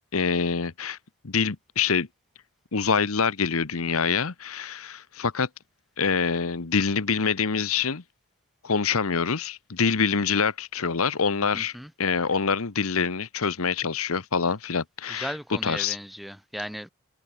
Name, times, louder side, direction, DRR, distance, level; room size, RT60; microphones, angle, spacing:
voice 1, 0.1-1.0 1.2-2.1 2.7-5.5 6.0-8.0 8.6-11.7 12.0-15.3 15.6-16.0, left 5 dB, 70° left, 1.1 m, -25 dB
voice 2, 11.5-11.9 15.1-16.9, equal, ahead, 4.3 m, -36 dB
head